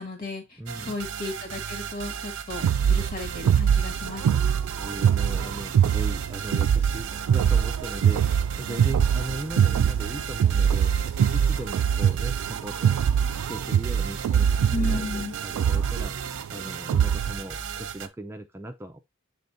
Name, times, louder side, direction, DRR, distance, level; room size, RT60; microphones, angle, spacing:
voice 1, 0.0-4.4 14.7-15.3, left 3 dB, 40° left, 2.3 m, -34 dB
voice 2, 0.6-1.0 4.7-13.0 13.5-16.2 16.5-19.0, right 1 dB, 10° right, 0.4 m, -38 dB
sound 1, 0.7-18.1, right 7 dB, 55° right, 0.7 m, -36 dB
sound 2, 2.6-17.4, right 8 dB, 90° right, 0.3 m, -23 dB
8.0 x 3.4 x 3.9 m
head